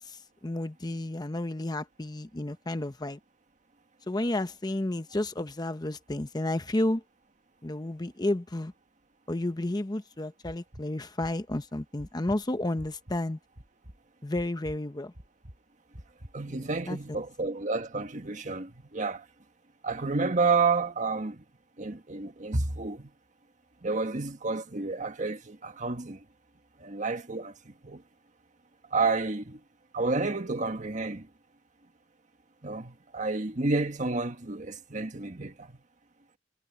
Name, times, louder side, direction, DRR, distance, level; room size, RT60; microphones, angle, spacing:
voice 1, 0.0-3.2 4.1-7.0 7.6-8.7 9.3-13.4 14.2-15.1 16.6-17.2, left 1 dB, 20° left, 0.8 m, -32 dB
sound 1, 10.4-10.8 11.2-11.6 12.0-13.2 13.6-14.0 14.3-14.8 15.1-15.6 15.9-16.3, equal, 60° right, 4.4 m, -46 dB
voice 2, 16.3-19.2 19.8-21.4 21.8-23.1 23.8-26.2 26.8-28.0 28.9-29.6 29.9-31.3 32.6-35.7, right 3 dB, 45° right, 1.6 m, -30 dB
head